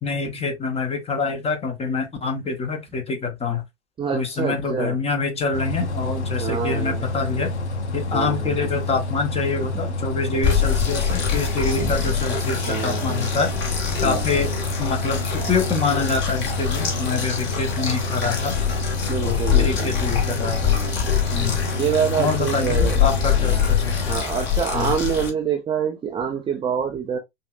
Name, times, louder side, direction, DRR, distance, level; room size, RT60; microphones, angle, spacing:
voice 1, 0.0-3.6 4.1-7.5 7.9-13.5 14.0-18.5 19.2-20.7 21.3-21.6 22.2-24.0 24.7-24.9, left 4 dB, 15° left, 1.1 m, -26 dB
voice 2, 4.0-5.0 6.4-7.0 8.1-8.5 12.7-13.3 14.0-14.2 19.1-20.0 20.6-21.0 21.7-23.0 23.4-23.6 24.1-27.2, right 8 dB, 15° right, 0.6 m, -26 dB
Bus, 5.5-24.2, left 2 dB, 85° left, 0.9 m, -28 dB
sound 1, 10.4-25.3, left 7 dB, 35° left, 1.7 m, -25 dB
5.5 x 2.7 x 2.4 m
figure-of-eight pair, 100°, 34 cm